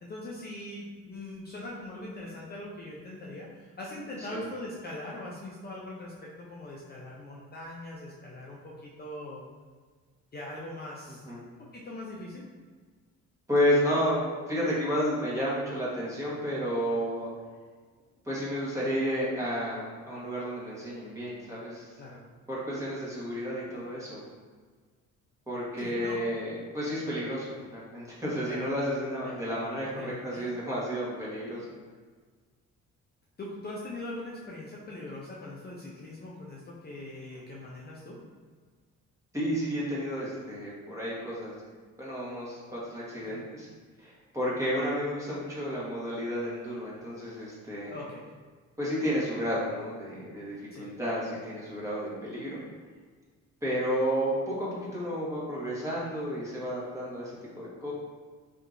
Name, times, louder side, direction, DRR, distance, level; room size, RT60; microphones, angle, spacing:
voice 1, 0.0-9.4 10.3-12.4 22.0-22.2 25.8-26.2 28.5-28.7 29.2-29.4 30.0-30.5 33.4-38.2 43.2-43.4 47.9-48.3 50.7-50.8, left 1 dB, 35° left, -4 dB, 0.5 m, -41 dB
voice 2, 13.5-17.3 18.2-21.9 22.5-24.2 25.5-31.7 39.3-41.5 42.0-43.7 44.0-47.9 48.8-52.6 53.6-57.9, equal, 10° right, -7 dB, 1.2 m, -31 dB
3.4 x 2.8 x 2.5 m, 1.5 s
cardioid pair, 90°, 30 cm